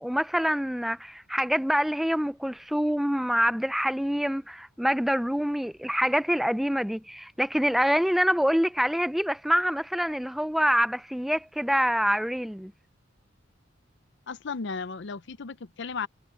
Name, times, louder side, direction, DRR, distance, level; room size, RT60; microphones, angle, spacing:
voice 1, 0.0-12.7, equal, ahead, 0.4 m, -26 dB
voice 2, 14.3-16.1, left 5 dB, 65° left, 0.6 m, -35 dB
head